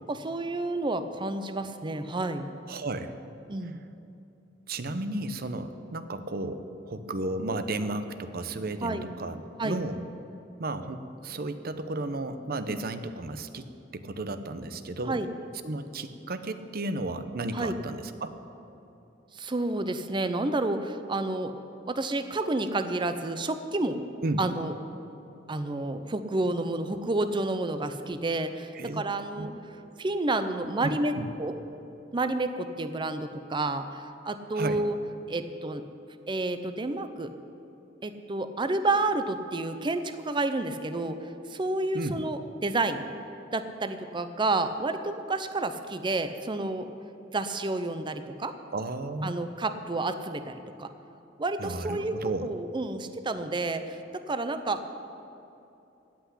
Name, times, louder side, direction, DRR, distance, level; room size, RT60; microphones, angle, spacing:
voice 1, 0.1-2.5 3.5-3.8 8.8-9.0 9.6-9.8 12.7-12.8 15.1-15.3 17.5-17.7 19.3-21.5 21.9-24.1 24.4-24.7 25.5-29.5 30.0-31.6 32.1-35.0 35.3-35.9 36.3-37.3 38.0-43.1 43.5-46.9 47.3-48.5 49.2-50.9 51.4-54.8, right 2 dB, 25° right, 9 dB, 0.6 m, -30 dB
voice 2, 2.7-3.1 4.7-10.0 10.6-13.7 13.9-15.2 15.6-18.4 24.2-24.4 28.7-29.0 29.4-29.5 31.1-31.3 34.6-34.8 41.9-42.2 48.7-49.4 51.6-52.5, right 2 dB, 55° right, 10 dB, 0.8 m, -33 dB
16.0 x 5.9 x 10.0 m, 2.8 s
head